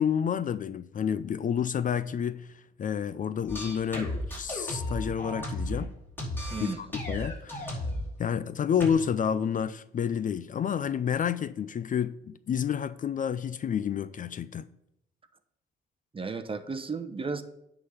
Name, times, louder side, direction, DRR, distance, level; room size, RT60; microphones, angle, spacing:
voice 1, 0.0-5.9 6.6-7.8 8.2-14.7, left 8 dB, 40° left, 0.4 m, -30 dB
sound 1, 3.5-5.9 6.2-8.1 8.8-8.9, left 1 dB, 10° left, 4.1 m, -34 dB
voice 2, 16.1-17.4, right 4 dB, 25° right, 0.9 m, -34 dB
9.4 x 3.9 x 7.1 m
cardioid pair, 90°, 20 cm